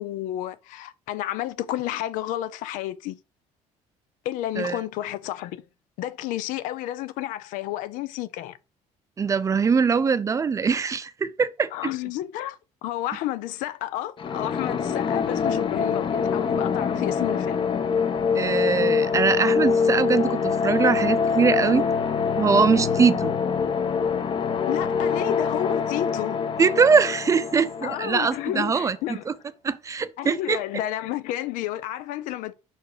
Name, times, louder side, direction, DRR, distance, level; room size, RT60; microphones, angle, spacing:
voice 1, 0.0-3.2 4.2-5.6 6.0-8.6 11.7-17.6 24.7-26.4 27.8-29.2 30.2-32.5, left 13 dB, 85° left, 0.7 m, -31 dB
voice 2, 9.2-11.7 18.3-21.9 22.4-23.3 26.6-29.3 29.6-30.6, right 5 dB, 25° right, 0.5 m, -22 dB
sound 1, 14.2-28.9, left 6 dB, 40° left, 0.9 m, -25 dB
5.8 x 4.7 x 5.0 m
cardioid pair, 130°, 13 cm